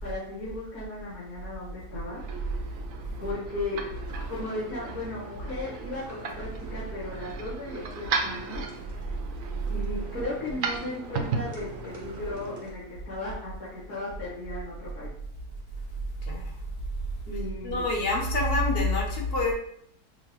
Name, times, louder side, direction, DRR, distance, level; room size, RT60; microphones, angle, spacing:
voice 1, 0.0-2.2 3.2-3.8 4.3-8.6 9.7-15.1 17.3-17.9, left 2 dB, 70° left, -11 dB, 1.9 m, -36 dB
sound 1, 2.0-12.6, right 5 dB, 70° right, 0.8 m, -36 dB
sound 2, 3.9-12.7, right 1 dB, 20° right, 0.5 m, -50 dB
voice 2, 17.6-19.5, left 2 dB, 45° left, -1 dB, 0.8 m, -26 dB
6.4 x 2.2 x 3.0 m, 0.69 s
omnidirectional pair, 1.8 m